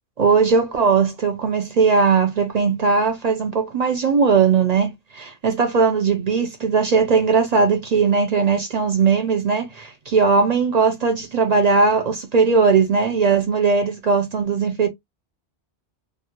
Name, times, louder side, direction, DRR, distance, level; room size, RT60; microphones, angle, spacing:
voice 1, 0.2-14.9, right 5 dB, 50° right, 0.5 m, -19 dB
2.3 x 2.0 x 2.8 m
omnidirectional pair, 1.1 m